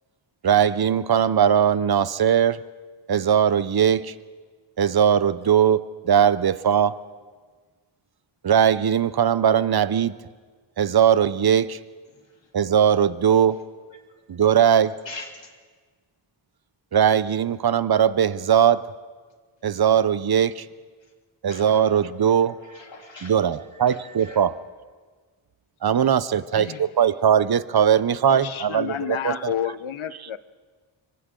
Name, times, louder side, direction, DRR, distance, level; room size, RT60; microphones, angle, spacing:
voice 1, 0.4-2.6 3.1-4.1 4.8-7.0 8.4-10.1 10.8-11.8 12.5-13.6 14.3-15.0 16.9-18.8 19.6-20.7 21.4-22.6 23.2-24.5 25.8-29.5, right 8 dB, 50° right, 16 dB, 0.7 m, -20 dB
voice 2, 12.1-12.5 13.5-13.6 13.9-14.4 15.0-15.5 21.0-21.1 21.5-24.4, left 3 dB, 65° left, 1 dB, 3.4 m, -44 dB
voice 3, 28.3-30.4, left 10 dB, 80° left, 14 dB, 0.8 m, -30 dB
30.0 x 25.0 x 3.8 m, 1.5 s
wide cardioid pair, 110°, 48 cm